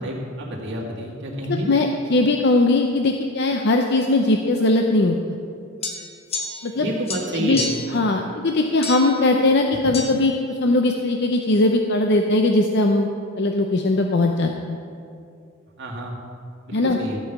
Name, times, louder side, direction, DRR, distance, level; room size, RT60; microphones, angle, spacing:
voice 1, 0.0-1.7 6.7-7.7 15.8-16.2 16.7-17.2, equal, 60° right, -3 dB, 2.4 m, -29 dB
voice 2, 1.5-5.4 6.6-6.9 7.3-13.1 13.4-14.8 16.7-17.0, left 2 dB, 55° left, 3 dB, 0.7 m, -20 dB
sound 1, 5.8-6.8 7.1-8.0 8.8-9.2 9.9-10.1, left 3 dB, 30° left, 1.0 m, -30 dB
14.5 x 5.5 x 7.3 m, 2.5 s
head